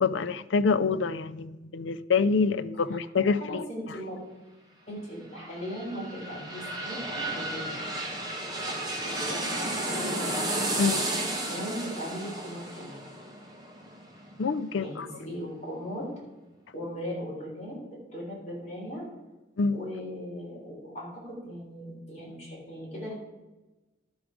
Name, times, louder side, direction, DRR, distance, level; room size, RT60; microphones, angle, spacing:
voice 1, 0.0-3.6 10.8-11.0 14.4-15.1 19.6-19.8, left 4 dB, 80° left, 14 dB, 0.5 m, -26 dB
voice 2, 3.4-4.2 4.9-7.8 8.5-10.3 11.5-13.0 14.8-16.1 16.7-19.1 19.7-23.1, equal, 40° left, -4 dB, 3.5 m, -38 dB
sound 1, 5.3-15.0 15.4-15.5, right 1 dB, 20° right, 1.3 m, -33 dB
12.0 x 6.1 x 4.8 m, 1.1 s
head